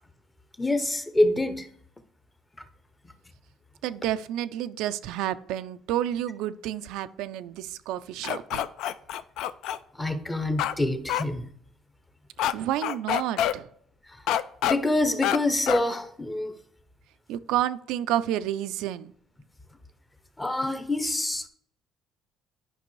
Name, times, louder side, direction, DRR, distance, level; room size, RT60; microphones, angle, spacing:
voice 1, 0.6-1.7 10.0-11.5 14.6-16.5 20.4-21.5, left 1 dB, 10° left, 0.6 m, -26 dB
voice 2, 3.8-8.7 12.5-13.7 17.3-19.1, right 12 dB, 90° right, 0.4 m, -30 dB
sound 1, 8.2-9.8 10.6-10.7 11.1-11.2 12.4-12.5 12.8-13.5 14.3-14.8 15.2-15.4 15.7-15.8, left 11 dB, 75° left, 0.3 m, -26 dB
11.0 x 5.2 x 3.1 m
cardioid pair, 155°, 0 cm